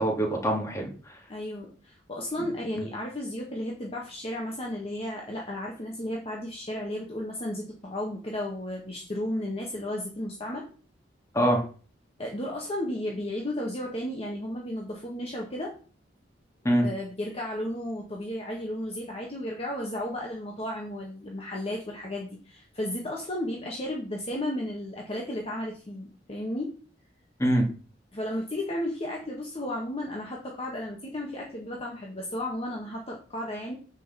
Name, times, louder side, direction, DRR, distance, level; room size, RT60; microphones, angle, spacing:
voice 1, 0.0-1.2 2.4-2.5 2.8-2.9 11.3-11.6 16.6-16.9 27.4-27.7, right 1 dB, 15° left, 0 dB, 2.3 m, -24 dB
voice 2, 1.3-10.6 12.2-15.7 16.8-26.8 28.1-33.8, left 1 dB, 35° left, -1 dB, 1.5 m, -34 dB
6.3 x 5.4 x 6.8 m, 0.39 s
head